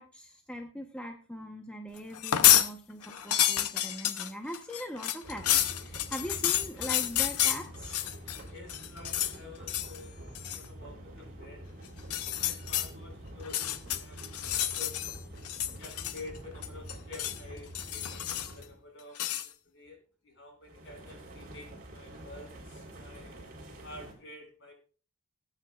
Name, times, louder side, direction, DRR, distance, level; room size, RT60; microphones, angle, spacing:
voice 1, 0.0-5.5 5.7-8.1, equal, 5° left, 2 dB, 0.9 m, -41 dB
sound 1, 2.1-2.7 3.0-8.4 8.7-9.3 9.7-10.0 10.3-10.7 12.0-12.9 13.4-15.2 15.4-16.4 16.6-17.4 17.7-18.6 19.2-19.5, left 11 dB, 85° left, 0.7 m, -29 dB
sound 2, 5.2-18.8 20.6-24.1, right 1 dB, 40° right, 4.1 m, -46 dB
voice 2, 8.5-11.7 12.2-14.2 14.4-15.0 15.8-23.4 23.8-24.7, left 2 dB, 55° left, 2 dB, 5.7 m, -49 dB
20.5 x 9.1 x 2.4 m, 0.38 s
head